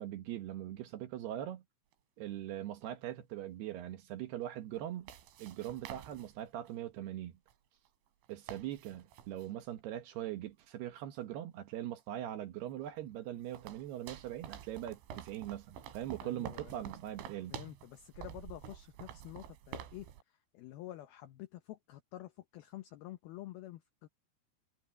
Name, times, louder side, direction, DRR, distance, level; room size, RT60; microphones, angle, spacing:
voice 1, 0.0-1.6 2.2-5.1 5.4-7.3 8.3-17.6, right 12 dB, 70° right, 2.8 m, -41 dB
sound 1, 1.9-2.0 4.8-6.7 7.5-7.6 7.9-8.0 8.2-9.5 12.0-12.1 12.7-20.2, right 9 dB, 85° right, 4.5 m, -49 dB
voice 2, 16.2-16.9 17.5-20.1 20.5-24.1, left 15 dB, 85° left, 2.1 m, -49 dB
omnidirectional pair, 5.6 m